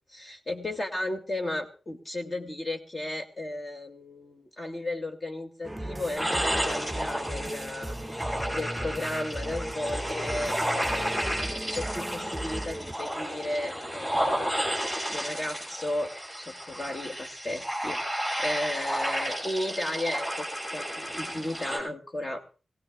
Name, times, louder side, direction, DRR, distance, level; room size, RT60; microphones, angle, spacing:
voice 1, 0.1-11.2 11.7-14.6 15.1-20.5 20.7-22.4, left 1 dB, 25° left, 3 dB, 2.4 m, -35 dB
sound 1, 5.6-12.9, right 1 dB, 10° right, 0.6 m, -37 dB
sound 2, 6.2-21.8, equal, 10° left, 6.0 m, -32 dB
24.5 x 18.0 x 2.4 m, 0.36 s
wide cardioid pair, 170°, 0 cm